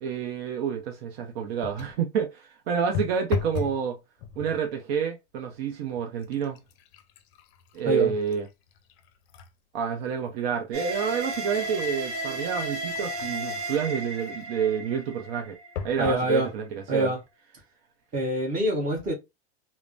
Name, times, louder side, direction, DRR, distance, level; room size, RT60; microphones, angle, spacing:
voice 1, 0.0-4.0 4.4-6.6 7.7-8.5 9.7-15.6 15.8-17.1, right 7 dB, 65° right, 0.6 m, -29 dB
sound 1, 1.6-2.1 2.9-3.8 4.2-4.7 5.4-5.6 6.0-9.5 10.0-10.1 10.8-13.5 15.8-16.3 17.0-17.1 17.3-17.4, left 7 dB, 55° left, 0.5 m, -37 dB
sound 2, 10.7-16.1, right 1 dB, 45° right, 1.0 m, -34 dB
voice 2, 16.0-16.5 16.9-17.2 18.1-19.1, right 1 dB, 25° right, 1.2 m, -25 dB
3.1 x 2.1 x 2.4 m
supercardioid pair, 140°, 33 cm